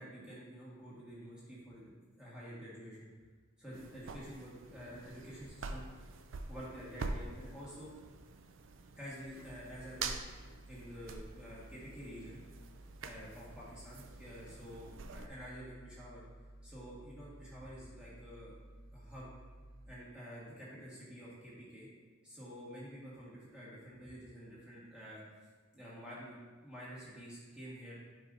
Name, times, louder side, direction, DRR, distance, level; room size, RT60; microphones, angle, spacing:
voice 1, 0.0-3.1 3.6-5.8 6.5-7.9 8.9-10.1 10.7-12.4 13.0-16.2 16.6-18.5 18.9-19.3 19.9-21.9 22.2-25.2 25.7-27.9, equal, 5° right, -8 dB, 1.6 m, -49 dB
sound 1, 3.7-15.3, right 4 dB, 70° right, 0.4 m, -46 dB
sound 2, 9.3-19.9, right 1 dB, 40° right, 1.3 m, -55 dB
7.5 x 4.9 x 2.7 m, 1.4 s
head